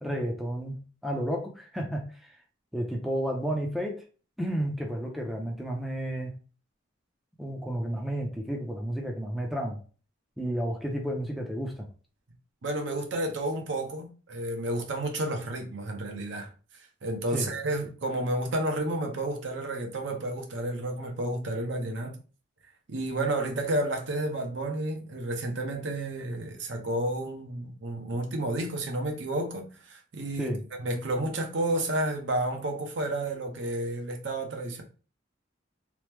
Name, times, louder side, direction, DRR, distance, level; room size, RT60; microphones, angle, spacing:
voice 1, 0.0-2.3 2.7-4.0 4.4-6.3 7.4-9.8 10.4-11.9 17.3-17.5 30.4-30.6, equal, ahead, 0.4 m, -31 dB
voice 2, 12.6-22.2 22.9-30.5 30.8-34.8, right 1 dB, 65° right, 0.6 m, -31 dB
3.0 x 2.0 x 3.2 m
head